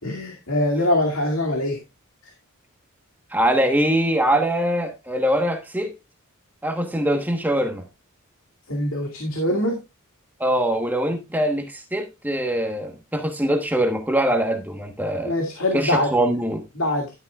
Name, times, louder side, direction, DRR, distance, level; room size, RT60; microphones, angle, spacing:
voice 1, 0.0-1.8 8.7-9.8 15.2-16.3 16.8-17.1, left 1 dB, 65° left, 2.2 m, -23 dB
voice 2, 3.3-5.9 6.6-7.8 10.4-15.3 15.7-16.6, right 1 dB, 10° right, 1.2 m, -23 dB
11.5 x 9.5 x 2.4 m
head